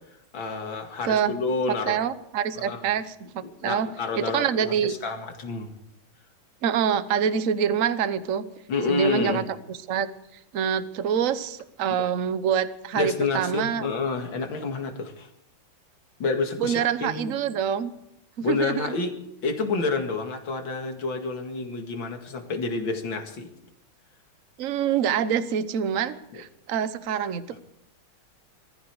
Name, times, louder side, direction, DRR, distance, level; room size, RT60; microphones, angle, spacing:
voice 1, 0.3-2.0 2.6-2.8 3.4-5.7 8.7-9.4 12.0-12.1 13.0-15.3 16.2-17.3 18.4-19.1 19.4-23.5 26.3-26.4, left 4 dB, 65° left, 4 dB, 2.8 m, -29 dB
voice 2, 1.0-1.4 1.9-3.9 4.2-4.9 6.6-8.4 8.9-9.4 9.7-10.1 10.5-13.9 16.6-17.9 18.5-19.0 24.6-27.6, right 8 dB, 50° right, 13 dB, 1.1 m, -26 dB
20.5 x 14.5 x 4.8 m, 0.80 s
omnidirectional pair, 2.3 m